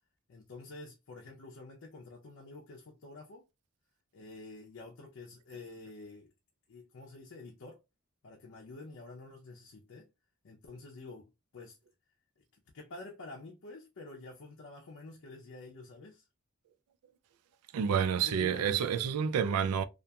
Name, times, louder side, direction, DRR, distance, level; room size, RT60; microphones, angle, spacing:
voice 1, 0.3-3.5 4.1-6.3 6.7-7.8 8.2-10.1 10.4-11.8 12.4-12.5 12.7-16.2 18.1-18.8, left 3 dB, 60° left, 0.5 m, -49 dB
voice 2, 17.7-19.8, right 7 dB, 85° right, 0.3 m, -29 dB
2.4 x 2.3 x 2.6 m
head